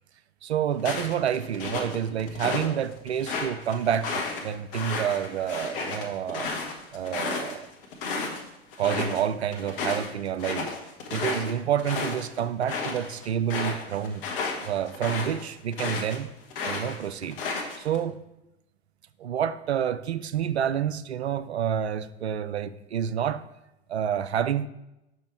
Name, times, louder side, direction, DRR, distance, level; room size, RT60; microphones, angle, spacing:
voice 1, 0.4-6.5 6.9-7.7 8.8-10.7 11.1-14.2 14.6-16.3 16.6-17.4 17.8-18.2 19.2-23.4 23.9-24.7, right 9 dB, 80° right, 0.5 m, -28 dB
sound 1, 0.8-2.7 3.1-8.4 8.7-9.2 9.5-16.2 16.5-18.0, left 4 dB, 55° left, 1.3 m, -32 dB
6.1 x 5.2 x 4.5 m
figure-of-eight pair, 85°, 32 cm